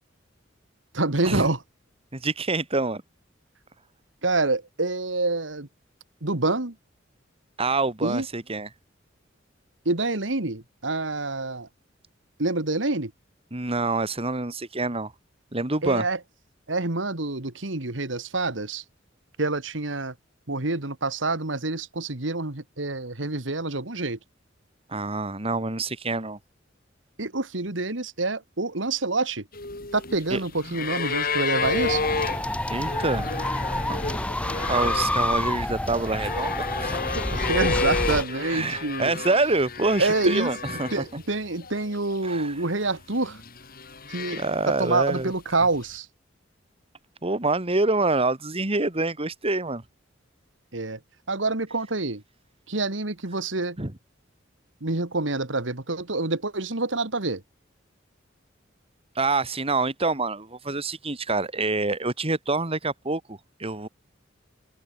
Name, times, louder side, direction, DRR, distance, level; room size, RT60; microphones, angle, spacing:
voice 1, 0.9-1.6 4.2-5.7 6.2-6.8 8.0-8.3 9.9-11.7 12.4-13.1 15.8-16.2 16.7-18.8 19.4-20.1 20.5-24.2 27.2-29.5 29.9-32.0 37.1-39.1 40.0-40.5 40.9-43.4 44.1-46.1 50.7-51.0 51.3-52.2 52.7-53.8 54.8-57.4, right 3 dB, 75° right, 2.2 m, -27 dB
voice 2, 2.1-3.0 7.6-8.7 13.5-15.1 15.5-16.1 24.9-26.4 30.3-30.4 32.7-33.3 33.9-34.0 34.7-37.2 38.4-41.0 42.2-42.5 44.3-45.3 47.2-49.8 53.8-53.9 59.2-63.9, right 3 dB, 30° right, 2.3 m, -26 dB
sound 1, 29.5-41.2 41.5-42.4 43.2-44.9 45.9-46.0, left 4 dB, 50° left, 5.7 m, -31 dB
sound 2, 31.6-38.2, left 1 dB, 5° left, 1.1 m, -28 dB
head